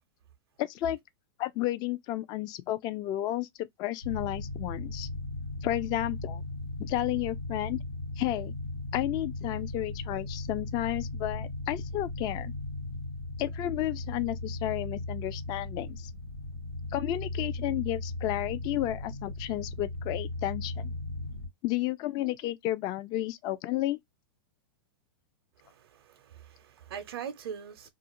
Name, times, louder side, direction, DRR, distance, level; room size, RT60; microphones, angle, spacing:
voice 1, 0.6-1.0 1.4-5.1 5.6-6.4 6.8-7.8 8.2-8.5 8.9-12.5 13.4-16.1 16.9-20.9 21.6-24.0, left 15 dB, 35° left, 0.3 m, -32 dB
sound 1, 4.0-21.5, left 2 dB, 90° left, 1.3 m, -37 dB
voice 2, 25.6-27.9, right 8 dB, 75° right, 0.5 m, -42 dB
2.4 x 2.3 x 2.8 m
hypercardioid pair, 130°, 13 cm